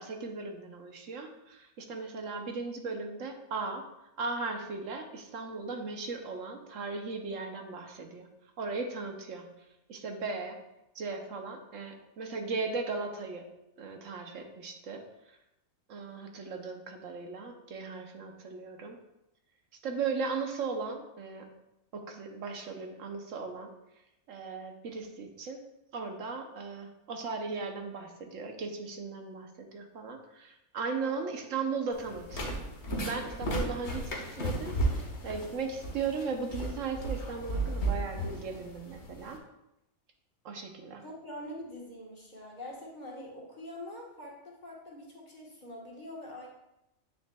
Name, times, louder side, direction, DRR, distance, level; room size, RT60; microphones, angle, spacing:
voice 1, 0.0-3.8 4.2-8.3 8.6-9.5 9.9-10.6 10.9-13.5 13.8-15.0 15.9-19.0 19.8-21.5 21.9-23.7 24.3-25.6 25.9-32.6 32.9-34.1 34.4-39.4 40.4-41.0, right 4 dB, 75° right, 4 dB, 1.1 m, -37 dB
voice 2, 31.0-31.4 41.0-46.5, left 1 dB, 35° left, -3 dB, 1.4 m, -44 dB
sound 1, 31.9-39.4, right 1 dB, 60° left, 1.3 m, -34 dB
8.0 x 6.2 x 2.3 m, 0.88 s
omnidirectional pair, 1.4 m